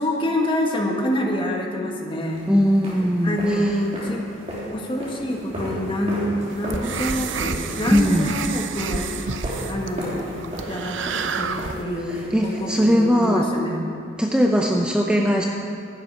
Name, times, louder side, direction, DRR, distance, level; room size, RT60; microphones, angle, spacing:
voice 1, 0.0-2.4 3.2-4.3 4.7-9.2 9.7-10.3 10.7-13.9, left 1 dB, 25° left, 1 dB, 1.5 m, -26 dB
sound 1, 2.3-13.4, right 1 dB, 35° right, 3.3 m, -35 dB
voice 2, 2.5-3.7 7.9-8.3 12.3-13.5 14.2-15.5, equal, 5° right, 1 dB, 0.6 m, -19 dB
sound 2, 6.5-11.8, right 5 dB, 75° right, 0.7 m, -29 dB
12.0 x 7.5 x 10.0 m, 2.6 s
head